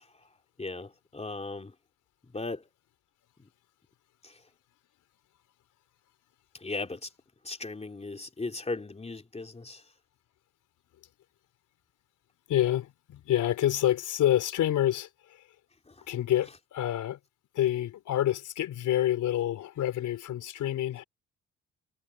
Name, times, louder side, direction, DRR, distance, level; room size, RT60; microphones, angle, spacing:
voice 1, 0.6-1.7 2.3-2.6 6.6-7.1 7.4-9.8, left 3 dB, 20° left, 3.3 m, -37 dB
voice 2, 12.5-15.4 16.1-17.2 17.5-21.0, left 12 dB, 80° left, 4.4 m, -28 dB
cardioid pair, 90°, 30 cm